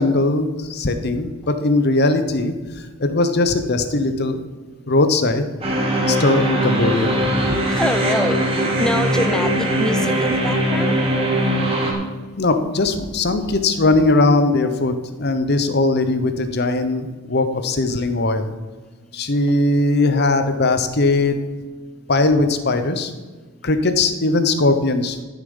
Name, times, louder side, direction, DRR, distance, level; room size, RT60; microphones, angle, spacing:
voice 1, 0.0-2.5 3.0-4.4 4.9-5.4 6.1-7.5 12.4-14.9 15.2-18.5 19.1-21.3 22.1-23.1 23.6-25.2, left 2 dB, 50° left, 9 dB, 0.9 m, -19 dB
sound 1, 5.6-11.9, right 1 dB, 25° right, 1.9 m, -20 dB
voice 2, 7.7-10.9, equal, 5° left, 9 dB, 0.6 m, -25 dB
13.0 x 7.4 x 5.5 m, 1.3 s
head